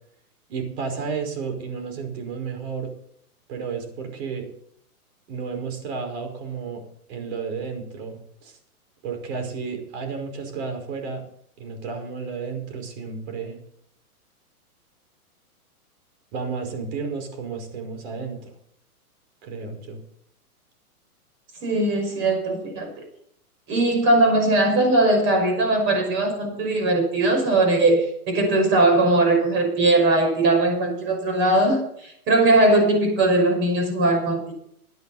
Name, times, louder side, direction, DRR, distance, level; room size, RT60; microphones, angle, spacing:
voice 1, 0.5-2.9 3.5-4.5 5.3-6.8 7.1-8.6 9.0-11.2 11.6-13.6 16.3-18.5 19.4-20.0, right 5 dB, 45° right, 5 dB, 5.4 m, -32 dB
voice 2, 21.6-23.0 23.7-34.5, right 2 dB, 25° right, 3 dB, 5.7 m, -20 dB
17.5 x 11.5 x 4.3 m, 0.68 s
hypercardioid pair, 145°, 45 cm